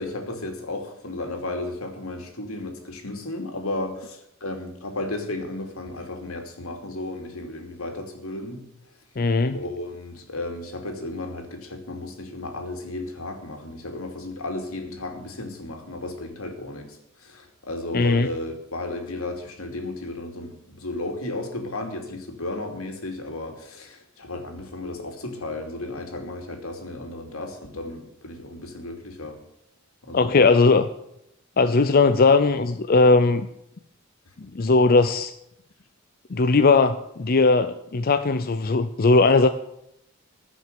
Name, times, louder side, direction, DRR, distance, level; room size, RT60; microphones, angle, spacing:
voice 1, 0.0-8.6 9.5-29.4 30.0-30.4, left 2 dB, 85° left, 4 dB, 2.9 m, -34 dB
voice 2, 9.2-9.6 17.9-18.3 30.1-30.9 31.6-33.5 34.4-35.3 36.3-39.5, left 3 dB, 45° left, 10 dB, 0.6 m, -18 dB
15.5 x 6.1 x 9.5 m, 0.79 s
head